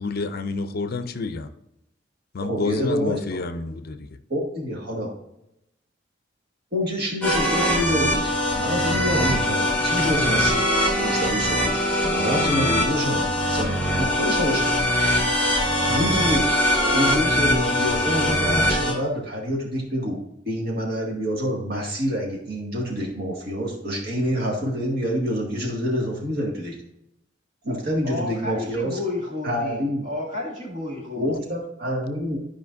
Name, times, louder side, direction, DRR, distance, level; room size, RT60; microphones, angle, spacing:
voice 1, 0.0-1.5 2.3-4.1, left 3 dB, 55° left, 11 dB, 0.5 m, -29 dB
voice 2, 2.5-3.4 4.3-5.1 6.7-10.7 10.9-11.7 12.0-14.7 15.9-26.8 27.6-29.0 29.4-30.0 31.2-32.4, equal, 55° right, -1 dB, 2.0 m, -27 dB
sound 1, 7.2-18.9, equal, 10° left, 1.7 m, -22 dB
voice 3, 28.0-31.3, left 2 dB, 40° right, -4 dB, 2.5 m, -32 dB
12.0 x 5.0 x 2.6 m, 0.83 s
head